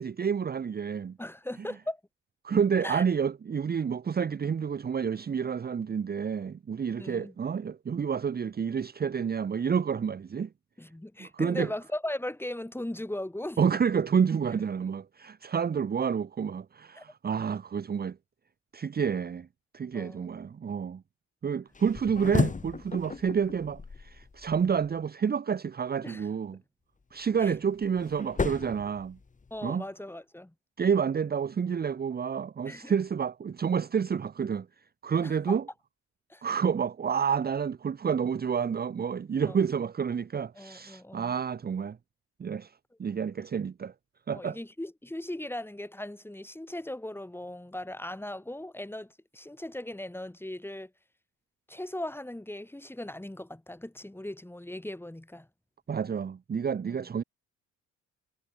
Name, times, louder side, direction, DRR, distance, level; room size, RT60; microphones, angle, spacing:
voice 1, 0.0-1.2 2.4-10.5 11.2-11.7 13.6-18.2 18.7-19.5 19.7-21.0 21.4-26.6 27.1-29.2 29.6-29.8 30.8-34.7 35.0-35.6 36.4-42.0 42.4-42.7 43.0-43.9 44.3-44.6 55.9-57.2, right 7 dB, 30° right, 0.9 m, -29 dB
voice 2, 1.2-2.0 2.8-3.0 7.0-7.3 10.8-13.6 16.9-17.0 19.9-20.3 26.0-26.3 27.4-27.5 29.5-30.5 32.6-32.9 35.2-35.6 36.3-36.5 39.5-39.6 40.5-41.3 44.3-50.9 51.7-55.5 56.9-57.0, left 1 dB, 5° left, 6.6 m, -38 dB
sound 1, 21.7-24.9 27.1-29.7, left 4 dB, 25° left, 1.9 m, -34 dB
cardioid pair, 90°, 30 cm